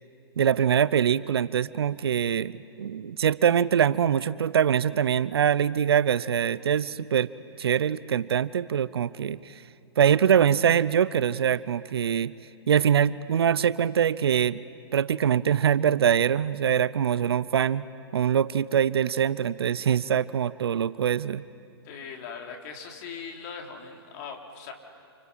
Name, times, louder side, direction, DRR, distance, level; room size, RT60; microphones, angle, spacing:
voice 1, 0.4-7.3 7.6-9.4 10.0-12.3 12.7-14.6 14.9-17.8 18.1-21.4, right 8 dB, 70° right, 18 dB, 0.8 m, -23 dB
voice 2, 21.8-24.7, left 6 dB, 40° left, 2 dB, 3.7 m, -40 dB
30.0 x 28.0 x 5.7 m, 2.6 s
hypercardioid pair, 130°, 13 cm